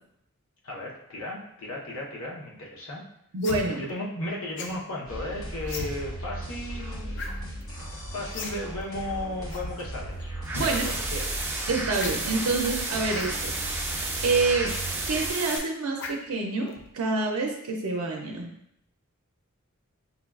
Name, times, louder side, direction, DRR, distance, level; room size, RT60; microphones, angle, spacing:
voice 1, 0.6-3.0 3.8-7.7 8.1-10.1 10.6-11.4, left 1 dB, 90° left, -2 dB, 0.8 m, -35 dB
voice 2, 3.3-3.9 10.6-10.8 11.7-13.5 14.2-14.7 15.1-18.5, right 3 dB, 70° right, 1 dB, 0.5 m, -27 dB
sound 1, 3.4-3.6 4.6-4.8 5.7-5.9 7.2-7.3 7.6-7.7 8.3-8.6 8.8-8.9 9.5-9.7 10.4-10.7 11.9-12.1 13.1-13.3 14.1-14.3 16.0-16.3 16.7-16.9, left 3 dB, 55° left, 0.4 m, -36 dB
sound 2, 5.1-15.3, right 1 dB, 70° left, 1.1 m, -37 dB
sound 3, 10.4-15.6, right 2 dB, 10° right, 0.3 m, -32 dB
5.5 x 2.3 x 2.3 m, 0.74 s
head